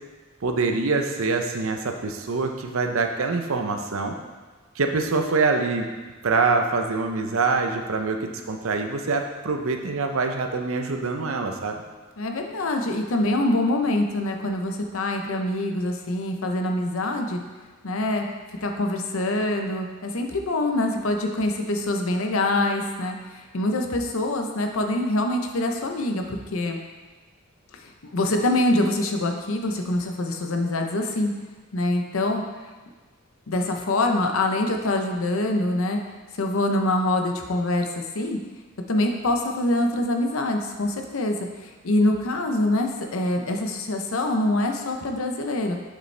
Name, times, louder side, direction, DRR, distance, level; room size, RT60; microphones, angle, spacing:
voice 1, 0.4-4.1 4.8-5.9 6.2-11.8, right 4 dB, 70° right, 4 dB, 0.7 m, -25 dB
voice 2, 12.2-17.4 17.8-18.3 18.6-26.8 27.8-31.3 31.7-32.4 33.5-36.0 36.4-38.4 38.9-45.8, left 1 dB, 70° left, 3 dB, 0.7 m, -25 dB
7.6 x 5.2 x 3.3 m, 1.3 s
head